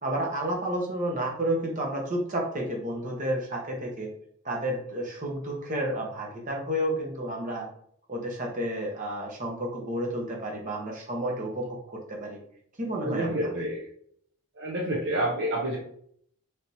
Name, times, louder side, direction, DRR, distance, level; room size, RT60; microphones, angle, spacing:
voice 1, 0.0-4.1 4.4-7.6 8.1-12.4 12.8-13.5, right 1 dB, 35° right, 0 dB, 0.9 m, -31 dB
voice 2, 13.0-13.9 14.6-15.8, right 1 dB, 55° right, -1 dB, 0.6 m, -28 dB
3.4 x 2.8 x 4.1 m, 0.65 s
head